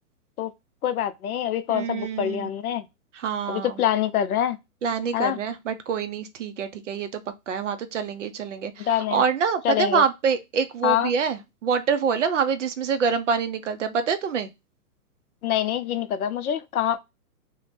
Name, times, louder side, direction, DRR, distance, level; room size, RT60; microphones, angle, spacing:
voice 1, 0.8-2.8 3.5-4.6 5.1-5.4 8.8-9.2 9.6-10.0 10.8-11.1 15.4-17.0, left 10 dB, 70° left, 0.6 m, -25 dB
voice 2, 1.7-2.5 3.1-3.8 4.8-7.2 7.5-14.5, right 6 dB, 55° right, 0.5 m, -26 dB
2.6 x 2.1 x 3.2 m
hypercardioid pair, 160°, 46 cm